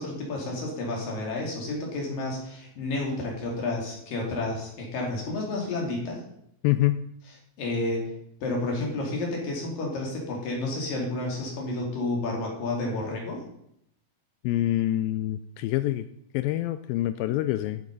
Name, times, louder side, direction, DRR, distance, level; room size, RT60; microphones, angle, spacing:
voice 1, 0.0-6.2 7.6-8.0 8.4-13.4, left 2 dB, 70° left, -1 dB, 4.6 m, -30 dB
voice 2, 6.6-7.0 14.4-16.1 16.3-17.8, left 14 dB, 85° left, 11 dB, 2.3 m, -26 dB
14.0 x 7.9 x 5.4 m, 0.73 s
omnidirectional pair, 4.1 m